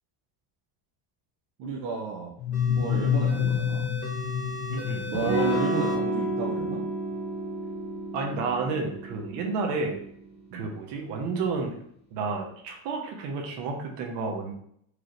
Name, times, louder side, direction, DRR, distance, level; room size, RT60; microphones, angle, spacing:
voice 1, 1.6-2.3 2.8-3.9 5.1-6.9 10.5-10.7, right 4 dB, 45° right, 0 dB, 0.5 m, -32 dB
sound 1, 2.4-6.1, left 8 dB, 85° left, 0.5 m, -28 dB
sound 2, 2.5-6.0, left 1 dB, 15° left, 0.7 m, -38 dB
voice 2, 4.7-5.1 8.1-10.0 10.5-11.8 12.1-14.5, right 4 dB, 60° right, 2 dB, 1.0 m, -31 dB
Electric guitar / Strum, 5.1-10.5, right 2 dB, 15° right, 0.9 m, -31 dB
4.7 x 3.1 x 2.5 m, 0.68 s
cardioid pair, 165°, 46 cm